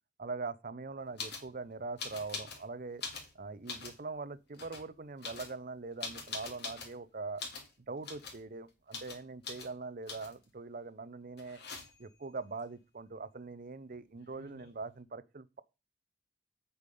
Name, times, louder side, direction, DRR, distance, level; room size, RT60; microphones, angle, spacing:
voice 1, 0.2-3.0 3.3-7.4 7.9-11.6 12.0-15.6, right 3 dB, 45° right, 0.6 m, -42 dB
sound 1, 1.2-1.5 2.0-2.6 2.9-4.0 4.5-4.8 5.2-7.0 7.4-7.7 8.0-8.4 8.9-9.2 9.4-9.7 10.1-10.4 11.4-12.1 13.9-14.0 14.2-14.8, left 4 dB, 55° left, 2.6 m, -43 dB
8.3 x 7.1 x 5.4 m
head